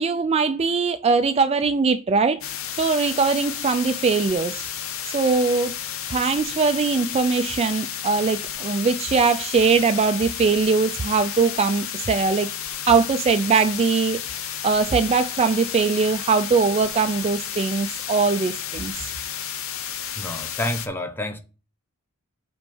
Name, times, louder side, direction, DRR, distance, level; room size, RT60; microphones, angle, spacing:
voice 1, 0.0-2.4 2.8-4.7 5.0-5.7 6.1-12.5 12.8-14.2 14.5-19.1, right 4 dB, 25° right, 0.3 m, -21 dB
sound 1, 2.4-20.9, left 9 dB, 60° left, 0.7 m, -32 dB
voice 2, 20.2-21.4, left 1 dB, 10° left, 0.7 m, -29 dB
5.9 x 4.4 x 5.4 m
head